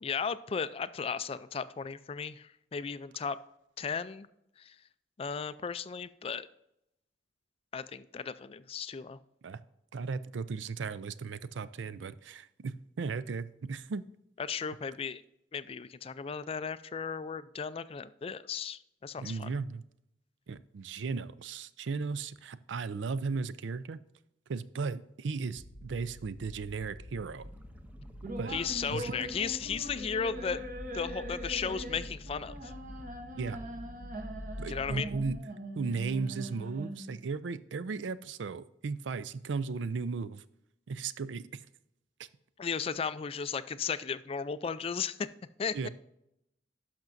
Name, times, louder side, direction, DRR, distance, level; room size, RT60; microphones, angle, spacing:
voice 1, 0.0-3.4 3.8-4.3 4.6-4.8 5.2-6.5 7.7-9.2 14.4-15.2 15.5-19.5 28.5-30.6 30.9-32.7 34.7-35.1 42.6-45.3 45.6-45.9, left 6 dB, 30° left, 15 dB, 0.3 m, -35 dB
voice 2, 9.9-14.0 19.2-19.8 20.5-24.0 24.5-27.5 28.4-28.6 28.9-29.0 33.4-33.6 34.6-35.4 35.8-40.4 40.9-41.7 42.2-42.3 45.7-45.9, right 4 dB, 80° right, 16 dB, 0.4 m, -36 dB
sound 1, 25.5-35.4, equal, 70° left, 0.8 m, -46 dB
sound 2, 27.4-34.4, right 1 dB, 10° right, 0.6 m, -56 dB
sound 3, 28.2-37.2, right 1 dB, 45° right, 0.8 m, -42 dB
12.0 x 5.9 x 2.6 m, 0.81 s
head